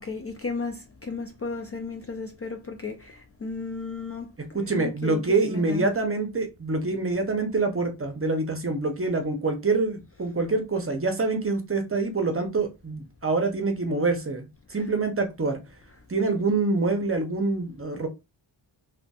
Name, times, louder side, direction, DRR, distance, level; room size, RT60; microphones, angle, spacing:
voice 1, 0.0-5.9, left 4 dB, 35° left, 0.4 m, -34 dB
voice 2, 4.5-15.6 16.1-18.1, right 3 dB, 30° right, 0.7 m, -26 dB
2.5 x 2.4 x 2.3 m
cardioid pair, 50°, 47 cm